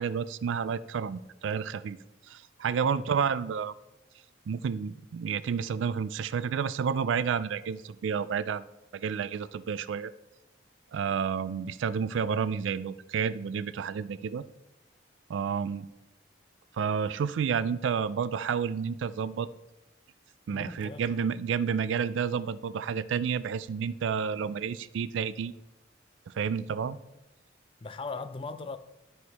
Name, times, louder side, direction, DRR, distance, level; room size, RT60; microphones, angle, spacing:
voice 1, 0.0-2.0 2.3-3.7 4.5-8.7 8.9-10.1 10.9-14.5 15.3-15.9 16.8-19.5 20.5-25.5 26.3-27.0, right 6 dB, 80° right, 0.3 m, -30 dB
voice 2, 20.5-21.0 26.8-26.9 27.8-28.8, left 3 dB, 30° left, 0.4 m, -39 dB
11.5 x 4.7 x 4.1 m
head